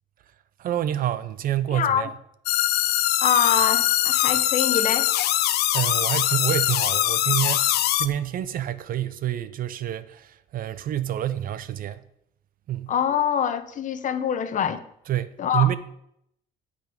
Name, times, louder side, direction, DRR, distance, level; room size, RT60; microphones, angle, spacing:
voice 1, 0.6-2.1 5.7-12.0 12.7-12.9 15.1-15.8, right 12 dB, 60° right, 0.7 m, -27 dB
voice 2, 1.7-2.1 3.2-5.1 12.9-14.8 15.4-15.7, left 8 dB, 50° left, 1.0 m, -24 dB
sound 1, 2.5-8.1, left 14 dB, 70° left, 0.6 m, -22 dB
16.0 x 5.3 x 5.2 m
cardioid pair, 110°, 17 cm